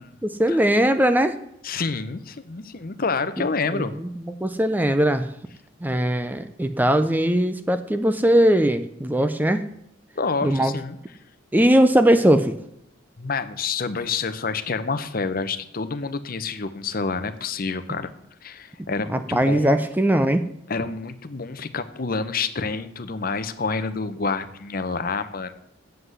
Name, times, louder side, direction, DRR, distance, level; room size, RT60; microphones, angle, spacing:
voice 1, 0.2-1.4 3.7-5.3 5.8-9.6 10.4-10.7 11.5-12.5 19.1-20.4, right 1 dB, 10° right, 9 dB, 0.5 m, -20 dB
voice 2, 1.6-3.9 10.2-11.0 13.2-18.1 18.4-19.8 20.7-25.5, left 4 dB, 45° left, 12 dB, 0.8 m, -28 dB
7.9 x 7.8 x 7.9 m, 0.75 s
head